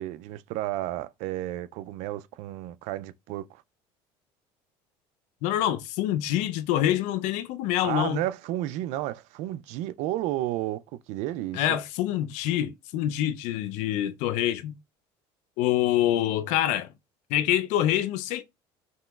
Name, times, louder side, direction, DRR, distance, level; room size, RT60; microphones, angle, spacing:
voice 1, 0.0-3.5 7.8-10.8 11.1-11.8, right 14 dB, 70° right, 0.4 m, -32 dB
voice 2, 5.4-8.2 11.5-14.7 15.6-16.9 17.3-18.4, left 12 dB, 75° left, 0.5 m, -26 dB
5.4 x 2.9 x 2.3 m
supercardioid pair, 105°, 12 cm